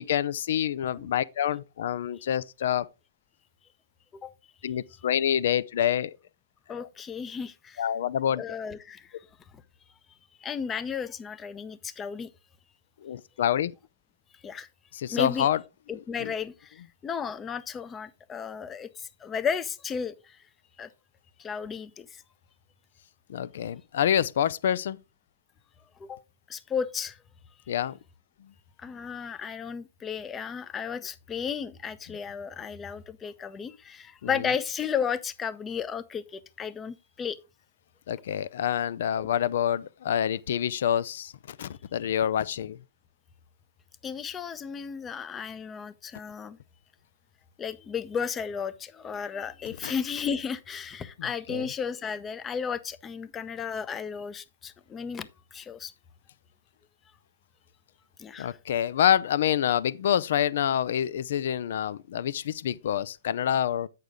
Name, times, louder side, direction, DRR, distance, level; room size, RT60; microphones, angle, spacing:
voice 1, 0.0-2.9 4.6-6.1 6.7-6.9 7.8-8.4 13.0-13.7 14.9-15.6 16.2-16.3 23.3-25.0 27.7-28.0 38.1-42.8 49.8-49.9 51.2-51.7 58.4-63.9, left 10 dB, 65° left, 0.5 m, -27 dB
voice 2, 6.7-7.8 8.4-9.1 10.4-12.3 14.4-14.7 15.1-15.5 15.9-20.4 20.8-20.9 21.4-22.2 26.0-26.2 26.5-27.2 28.8-37.4 39.2-39.3 44.0-46.6 47.6-55.9 58.2-58.6, left 6 dB, 20° left, 0.6 m, -34 dB
8.2 x 6.6 x 3.7 m
hypercardioid pair, 135°, 0 cm